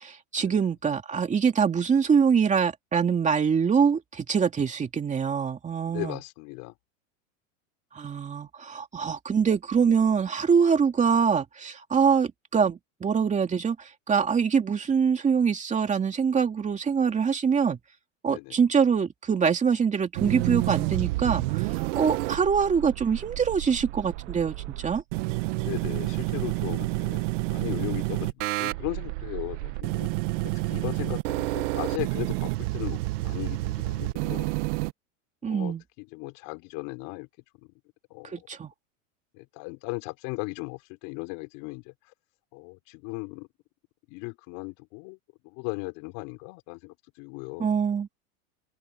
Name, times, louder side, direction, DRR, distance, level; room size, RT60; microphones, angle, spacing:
voice 1, 0.0-6.2 7.9-17.8 18.2-25.0 35.4-35.8 38.2-38.7 47.6-48.1, right 6 dB, 20° right, 2.7 m, -24 dB
voice 2, 5.9-6.7 18.3-18.6 25.6-30.1 30.4-34.5 35.4-37.3 37.6-37.7 38.1-38.4 39.3-41.9 42.5-43.5 44.1-45.2 45.4-47.7, left 29 dB, 55° left, 5.8 m, -37 dB
sound 1, 20.1-34.9, right 21 dB, 60° right, 1.4 m, -29 dB
open air
supercardioid pair, 140°, 40 cm